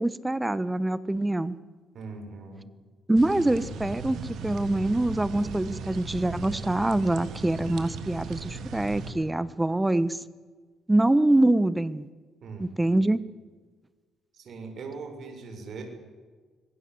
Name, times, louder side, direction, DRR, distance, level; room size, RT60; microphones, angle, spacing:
voice 1, 0.0-1.5 3.1-10.2 10.9-12.0 12.6-13.2, right 1 dB, 10° right, 16 dB, 1.1 m, -24 dB
voice 2, 1.9-2.7 12.4-13.0 14.3-15.8, right 4 dB, 60° right, 5 dB, 6.6 m, -40 dB
sound 1, 3.1-9.1, right 4 dB, 75° right, 3.1 m, -37 dB
26.0 x 21.5 x 7.8 m, 1.4 s
cardioid pair, 90°, 0 cm